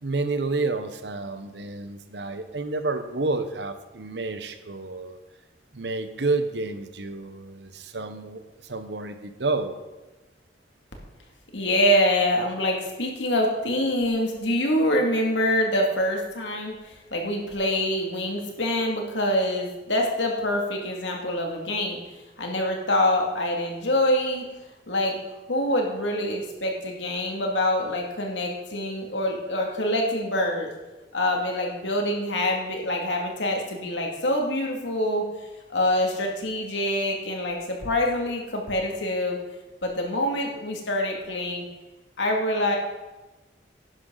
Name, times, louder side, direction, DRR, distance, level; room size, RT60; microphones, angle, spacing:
voice 1, 0.0-5.2 5.7-9.8, right 3 dB, 70° right, 10 dB, 0.9 m, -30 dB
voice 2, 11.5-22.0 22.4-24.4 24.9-25.2 25.5-30.7 31.1-35.2 35.7-39.4 39.8-41.7 42.2-42.8, left 1 dB, 90° left, 1 dB, 2.3 m, -25 dB
11.5 x 10.5 x 3.9 m, 1.1 s
head